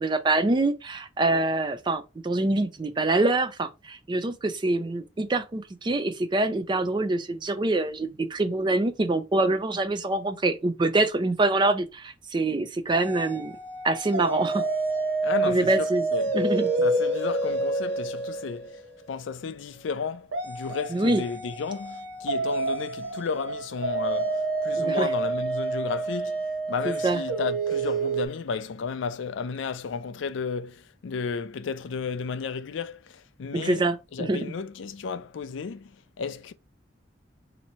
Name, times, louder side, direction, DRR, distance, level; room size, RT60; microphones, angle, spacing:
voice 1, 0.0-13.5 13.8-14.6 15.5-16.0 16.3-16.7 20.9-21.2 24.7-25.1 26.8-27.2 33.5-34.4, right 2 dB, 25° right, 0.4 m, -25 dB
sound 1, 12.9-19.1 20.3-28.3, right 2 dB, 85° right, 0.9 m, -28 dB
voice 2, 15.2-16.4 16.8-18.8 19.1-26.4 26.7-35.9 36.2-36.5, left 5 dB, 85° left, 0.4 m, -33 dB
2.9 x 2.7 x 4.1 m
head